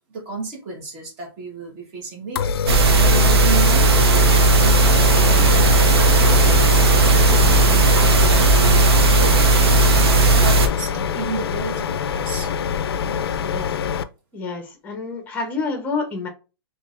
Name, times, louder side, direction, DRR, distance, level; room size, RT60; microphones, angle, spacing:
voice 1, 0.0-9.3 10.4-12.5 13.0-13.2, right 3 dB, 35° right, 0 dB, 1.3 m, -33 dB
sound 1, 2.4-14.0, left 7 dB, 80° left, 0.4 m, -26 dB
sound 2, 2.7-10.7, right 2 dB, 90° right, 0.7 m, -15 dB
voice 2, 14.3-16.3, left 4 dB, 15° left, 5 dB, 0.8 m, -28 dB
3.7 x 2.8 x 2.5 m, 0.31 s
hypercardioid pair, 160°, 13 cm